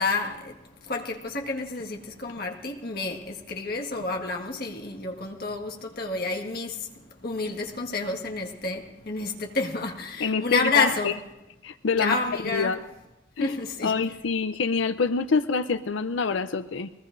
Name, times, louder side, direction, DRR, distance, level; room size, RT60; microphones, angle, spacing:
voice 1, 0.0-11.2 12.0-12.8 13.4-13.9, left 3 dB, 50° left, 1.7 m, -30 dB
voice 2, 10.2-11.1 11.6-12.2 12.4-12.8 13.4-16.9, left 5 dB, 75° left, 0.5 m, -26 dB
23.0 x 20.0 x 2.6 m
head